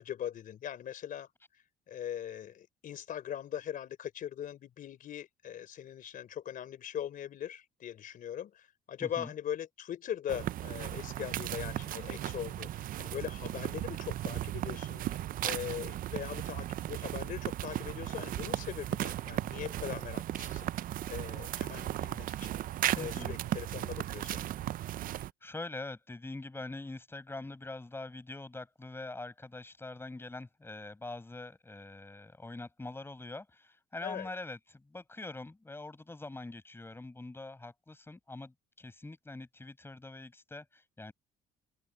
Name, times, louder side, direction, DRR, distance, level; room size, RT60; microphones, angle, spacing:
voice 1, 0.0-20.7 21.1-22.6 22.9-24.5 34.0-34.3, left 10 dB, 55° left, 3.8 m, -41 dB
voice 2, 9.0-9.3 23.0-23.4 25.0-41.1, left 2 dB, 15° left, 7.4 m, -44 dB
sound 1, 10.3-25.3, right 13 dB, 55° right, 0.5 m, -36 dB
open air
cardioid pair, 110°, 17 cm